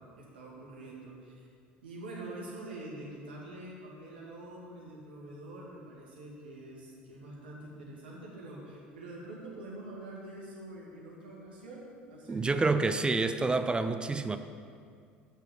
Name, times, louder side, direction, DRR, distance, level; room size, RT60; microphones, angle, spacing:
voice 1, 0.2-1.5 1.8-13.0, right 1 dB, 75° right, -4 dB, 2.2 m, -45 dB
voice 2, 12.3-14.4, right 3 dB, 15° right, 10 dB, 0.5 m, -28 dB
7.5 x 6.5 x 6.9 m, 2.3 s
figure-of-eight pair, 65°, 5 cm